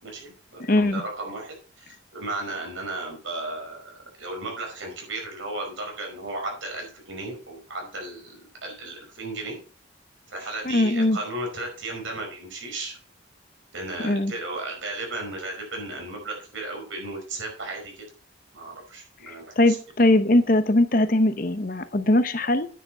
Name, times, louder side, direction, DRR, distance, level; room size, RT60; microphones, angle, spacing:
voice 1, 0.0-9.6 10.3-13.0 13.7-18.1 18.5-19.8, right 2 dB, 85° right, 1 dB, 5.1 m, -35 dB
voice 2, 0.6-1.0 10.6-11.2 14.0-14.3 19.3-22.7, left 1 dB, 45° left, 11 dB, 0.9 m, -21 dB
9.5 x 7.1 x 5.6 m, 0.39 s
head